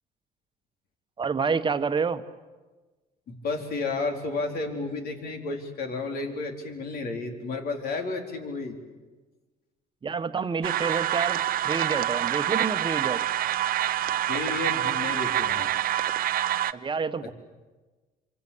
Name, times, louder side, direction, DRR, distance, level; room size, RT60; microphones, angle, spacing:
voice 1, 1.2-2.2 10.0-13.2 16.7-17.3, right 5 dB, 30° right, 10 dB, 1.3 m, -28 dB
voice 2, 3.3-8.8 14.2-15.7, left 3 dB, 65° left, 4 dB, 4.4 m, -32 dB
sound 1, 10.6-16.7, right 12 dB, 60° right, 0.9 m, -26 dB
26.5 x 25.0 x 8.6 m, 1.3 s
cardioid pair, 110°, 17 cm